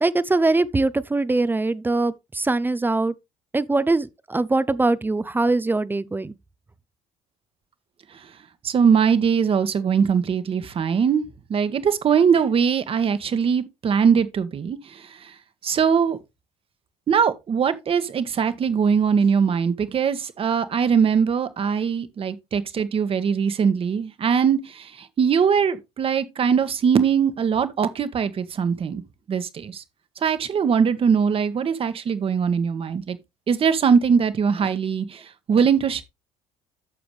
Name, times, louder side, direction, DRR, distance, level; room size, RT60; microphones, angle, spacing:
voice 1, 0.0-3.1 3.5-6.3, right 2 dB, 15° right, 0.6 m, -22 dB
voice 2, 8.6-11.2 11.5-14.8 15.6-16.2 17.1-24.6 25.2-29.0 29.3-29.8 30.2-33.2 33.5-35.0 35.5-36.0, right 6 dB, 45° right, 1.5 m, -21 dB
11.0 x 6.9 x 3.3 m
cardioid pair, 100°, 14 cm